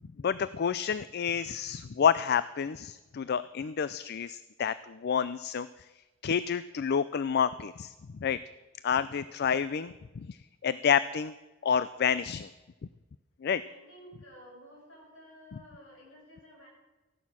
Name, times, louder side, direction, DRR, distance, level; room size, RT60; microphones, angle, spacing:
voice 1, 0.2-5.7 6.2-7.9 8.2-8.4 8.8-10.4 10.6-11.3 11.6-12.5 13.4-13.6, left 7 dB, 50° left, 15 dB, 0.4 m, -29 dB
voice 2, 13.6-16.7, equal, 70° left, -1 dB, 6.3 m, -53 dB
15.0 x 11.5 x 6.2 m, 1.1 s
head